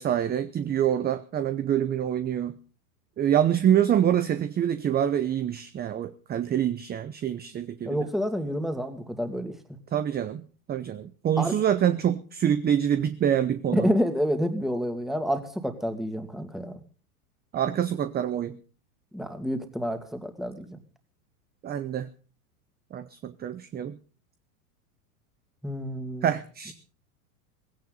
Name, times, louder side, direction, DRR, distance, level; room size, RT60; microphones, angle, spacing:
voice 1, 0.0-2.5 3.2-8.0 9.9-10.4 10.7-13.9 17.5-18.6 21.6-22.1 22.9-24.0 26.2-26.7, right 10 dB, 20° right, 12 dB, 0.8 m, -26 dB
voice 2, 7.8-9.5 11.4-11.5 13.7-16.8 19.1-20.8 25.6-26.3, equal, ahead, 6 dB, 2.4 m, -28 dB
17.0 x 16.5 x 4.0 m, 0.39 s
hypercardioid pair, 105°, 45 cm